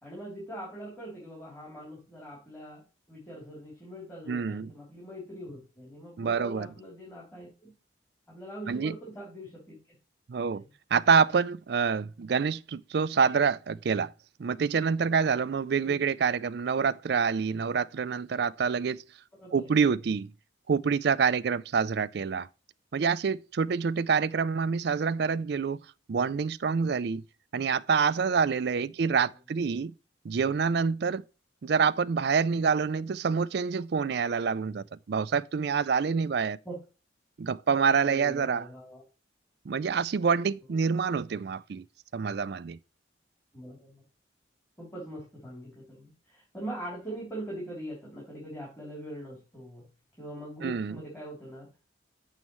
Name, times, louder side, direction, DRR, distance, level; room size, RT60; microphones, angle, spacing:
voice 1, 0.0-2.8 3.1-7.7 8.3-9.8 10.5-10.7 15.8-16.0 19.4-19.7 36.6-36.7 38.0-39.0 40.7-40.8 43.5-44.0 44.8-49.8 50.2-51.7, right 1 dB, 10° left, 3.3 m, -42 dB
voice 2, 4.3-4.7 6.2-6.7 8.7-8.9 10.3-10.6 10.9-14.1 14.4-19.0 19.5-20.3 20.7-22.5 22.9-25.8 26.1-27.2 27.5-29.9 30.2-31.2 31.6-36.6 37.4-38.7 39.7-41.8 42.1-42.8 50.6-51.0, right 5 dB, 55° right, 0.4 m, -27 dB
7.2 x 7.1 x 3.1 m
head